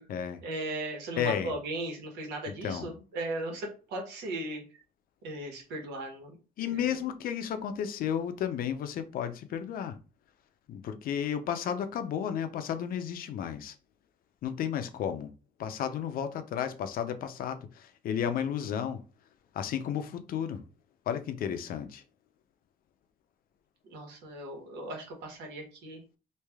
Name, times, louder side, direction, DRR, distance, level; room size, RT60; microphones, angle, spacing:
voice 1, 0.4-4.8 5.2-7.0 23.8-26.0, right 2 dB, 80° right, 1.3 m, -37 dB
voice 2, 1.2-1.5 2.6-2.9 6.6-10.0 10.7-13.8 14.4-15.3 15.6-19.0 19.5-20.6 21.1-22.0, left 8 dB, 60° left, 0.5 m, -33 dB
3.2 x 2.4 x 3.5 m
cardioid pair, 110°, 17 cm